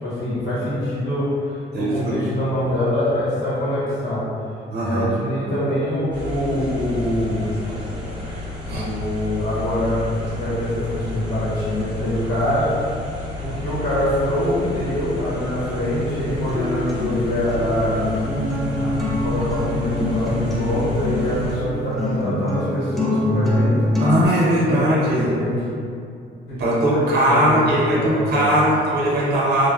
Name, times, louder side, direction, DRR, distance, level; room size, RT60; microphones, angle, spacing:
voice 1, 0.0-4.3 4.8-7.5 8.3-12.7 13.4-18.1 18.7-24.0 24.6-25.6 26.5-28.5, left 1 dB, 60° left, -9 dB, 1.0 m, -24 dB
voice 2, 1.7-2.2 4.7-5.1 8.7-8.8 24.0-25.3 26.6-29.7, right 1 dB, 55° right, -5 dB, 0.7 m, -19 dB
sound 1, 6.1-21.6, left 3 dB, 20° right, 1.1 m, -32 dB
Acoustic guitar, 16.3-24.2, left 1 dB, ahead, 0.5 m, -25 dB
3.1 x 2.1 x 2.3 m, 2.4 s
cardioid pair, 90°, 20 cm